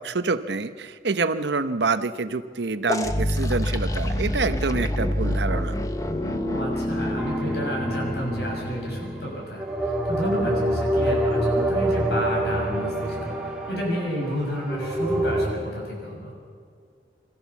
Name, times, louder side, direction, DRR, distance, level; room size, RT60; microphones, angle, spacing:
voice 1, 0.0-5.8, right 3 dB, 70° right, 11 dB, 0.8 m, -27 dB
sound 1, 2.9-9.5, left 1 dB, 20° left, 0.8 m, -27 dB
voice 2, 6.1-16.3, equal, 65° left, -1 dB, 6.7 m, -31 dB
sound 2, 7.2-8.9 9.6-15.5, right 1 dB, 5° right, 1.9 m, -26 dB
26.0 x 14.0 x 7.1 m, 2.2 s
head